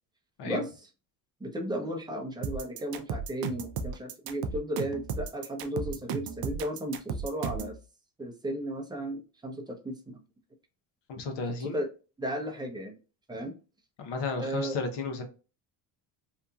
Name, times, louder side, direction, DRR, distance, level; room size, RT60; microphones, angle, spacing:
voice 1, 1.4-7.7 8.2-10.2 11.6-11.9 12.2-12.9 13.3-13.5 14.4-14.8, right 1 dB, 10° right, 0.7 m, -34 dB
sound 1, 2.4-7.8, right 6 dB, 50° right, 0.5 m, -34 dB
voice 2, 11.1-11.8 14.0-15.2, left 4 dB, 60° left, 0.9 m, -33 dB
2.8 x 2.4 x 2.3 m
supercardioid pair, 90°, 48 cm